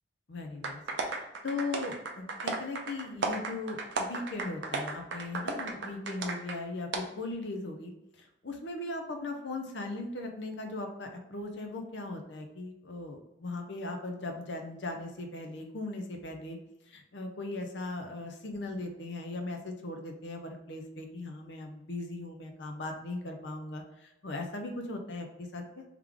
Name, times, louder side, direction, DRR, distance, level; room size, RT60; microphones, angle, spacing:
voice 1, 0.3-16.6 16.9-25.8, left 2 dB, 65° left, 3 dB, 0.6 m, -38 dB
sound 1, 0.6-6.6 6.9-7.0, right 3 dB, 75° right, 0.6 m, -35 dB
3.6 x 3.2 x 3.4 m, 0.92 s
head